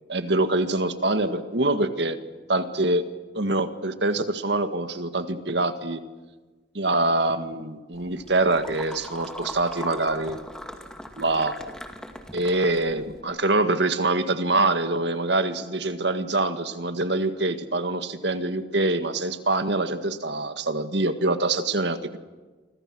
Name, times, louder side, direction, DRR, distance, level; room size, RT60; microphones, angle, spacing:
voice 1, 0.1-2.2 2.5-3.0 3.3-6.0 6.7-10.4 11.2-11.6 12.3-22.2, right 2 dB, 65° right, 9 dB, 1.9 m, -25 dB
sound 1, 7.9-13.2, equal, 5° left, 2.1 m, -40 dB
29.5 x 25.5 x 6.3 m, 1.3 s
head